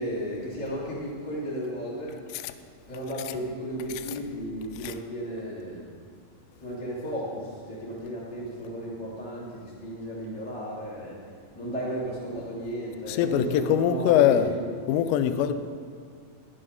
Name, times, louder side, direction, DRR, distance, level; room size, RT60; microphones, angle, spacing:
voice 1, 0.0-2.2 2.9-5.9 6.6-11.2 11.5-14.6 15.3-15.4, equal, 5° left, 0.9 m, -34 dB
voice 2, 13.1-14.5 14.9-15.5, left 10 dB, 85° left, 2.7 m, -22 dB
12.5 x 7.9 x 5.3 m
omnidirectional pair, 5.3 m